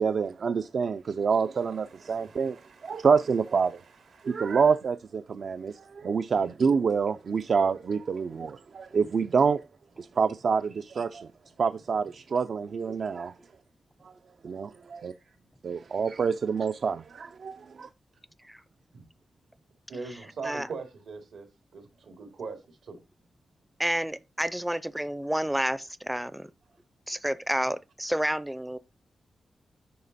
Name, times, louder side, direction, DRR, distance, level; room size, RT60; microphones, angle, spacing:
voice 1, 0.0-2.6 2.8-3.8 4.2-9.6 10.0-11.3 11.6-13.3 14.4-15.1 15.6-17.9, right 5 dB, 60° right, 0.4 m, -27 dB
voice 2, 1.6-3.1 3.6-4.6 5.7-5.8 6.3-6.6 13.4-13.5 14.7-15.4 15.9-16.0 18.9-19.0 19.9-23.0, right 4 dB, 90° right, 2.6 m, -43 dB
voice 3, 23.8-26.5 27.1-28.8, right 1 dB, 5° right, 0.4 m, -30 dB
9.4 x 5.6 x 4.1 m
wide cardioid pair, 105°, 0 cm